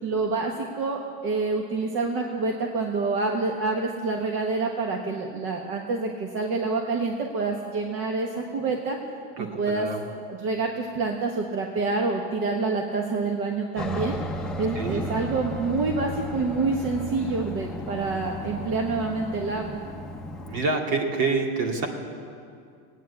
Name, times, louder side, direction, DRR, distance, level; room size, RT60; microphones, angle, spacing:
voice 1, 0.0-9.0 9.4-9.9 10.3-14.2 14.6-19.8, right 3 dB, 40° right, 1 dB, 1.3 m, -27 dB
voice 2, 9.4-10.1 14.8-15.2 20.5-21.9, right 4 dB, 60° right, 1 dB, 2.4 m, -27 dB
Aircraft, 13.8-20.6, left 1 dB, ahead, 0.9 m, -34 dB
16.5 x 9.3 x 8.4 m, 2.3 s
supercardioid pair, 150°, 33 cm